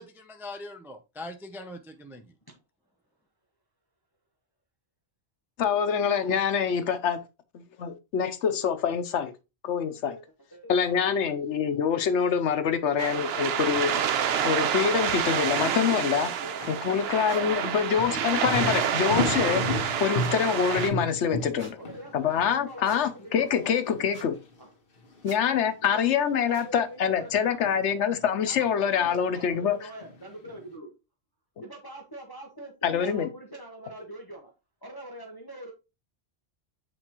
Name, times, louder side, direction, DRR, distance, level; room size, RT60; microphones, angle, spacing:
voice 1, 0.0-2.3, left 1 dB, 5° right, 0.5 m, -41 dB
voice 2, 5.6-7.2 7.5-9.3 9.6-10.2 10.7-13.9 14.4-16.3 16.7-21.8 22.1-24.3 25.2-29.8 32.8-33.3, left 7 dB, 85° left, 1.1 m, -25 dB
voice 3, 10.5-11.0 15.9-18.9 21.8-24.2 24.6-24.7 25.8-26.1 26.4-28.0 28.4-30.9 31.6-34.5 34.8-35.7, right 1 dB, 20° left, 1.1 m, -44 dB
sound 1, 13.0-20.9, right 8 dB, 65° right, 0.8 m, -28 dB
sound 2, 15.9-16.0 16.6-16.9 18.0-24.2 24.4-24.6 25.0-25.2 25.5-25.7 26.0-26.3 27.2-29.7 30.0-30.7, left 2 dB, 55° left, 1.3 m, -34 dB
sound 3, 17.3-17.4 18.8-19.0 20.2-20.4 21.6-21.7 22.8-23.0 24.1-24.3 25.2-25.4 26.5-26.7, right 2 dB, 90° right, 2.4 m, -47 dB
8.1 x 4.3 x 3.0 m
omnidirectional pair, 1.2 m